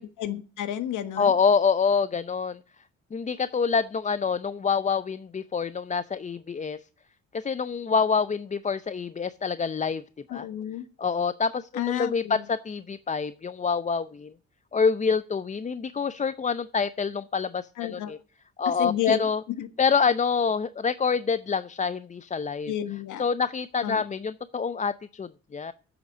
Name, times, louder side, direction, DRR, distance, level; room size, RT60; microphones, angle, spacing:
voice 1, 0.0-1.3 10.3-10.9 11.7-12.4 17.8-18.1 18.8-19.2 19.6-19.7 22.6-23.2 23.8-24.0, left 11 dB, 85° left, 11 dB, 1.4 m, -31 dB
voice 2, 1.2-2.6 3.1-6.8 7.3-10.0 10.3-10.5 11.0-14.3 14.7-18.2 18.6-19.4 19.8-22.7 23.2-25.7, left 5 dB, 25° left, 14 dB, 0.5 m, -26 dB
8.2 x 8.0 x 8.7 m, 0.39 s
cardioid pair, 90°, 30 cm